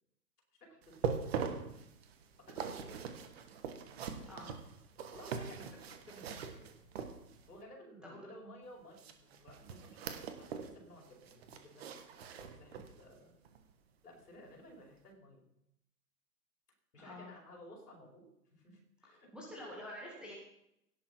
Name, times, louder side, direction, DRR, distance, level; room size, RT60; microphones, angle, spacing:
voice 1, 0.6-1.3 2.4-3.2 4.2-4.4 5.1-6.7 7.5-11.9 12.4-13.3 14.0-15.4 16.9-19.3, equal, 65° left, -1 dB, 4.9 m, -55 dB
sound 1, 0.8-7.6 9.0-10.8 11.1-13.0 13.5-13.6 14.1-14.2, right 6 dB, 40° right, 1.4 m, -42 dB
voice 2, 17.0-17.4 19.3-20.3, left 1 dB, ahead, -4 dB, 2.1 m, -47 dB
17.5 x 7.0 x 4.6 m, 0.80 s
figure-of-eight pair, 120°, 50 cm